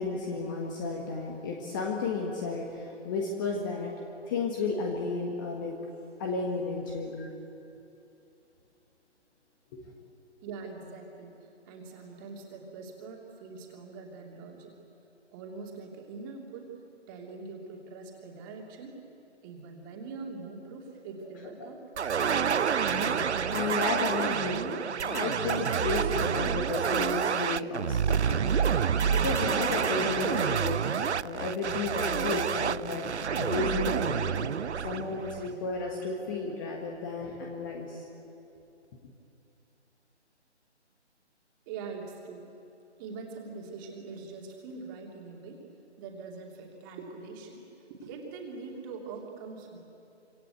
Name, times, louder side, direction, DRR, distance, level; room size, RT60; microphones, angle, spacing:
voice 1, 0.0-4.0 4.3-5.8 6.2-7.3 9.7-9.8 21.6-21.7 22.2-34.5 34.8-38.0, left 3 dB, 15° left, 1 dB, 1.5 m, -33 dB
voice 2, 10.4-14.8 15.3-16.7 17.1-19.0 19.4-21.8 41.7-42.5 43.0-45.6 46.0-49.8, right 4 dB, 20° right, 0 dB, 2.9 m, -43 dB
sound 1, 22.0-35.8, right 7 dB, 70° right, 0.6 m, -28 dB
25.5 x 25.5 x 8.2 m, 2.8 s
figure-of-eight pair, 150°, 35 cm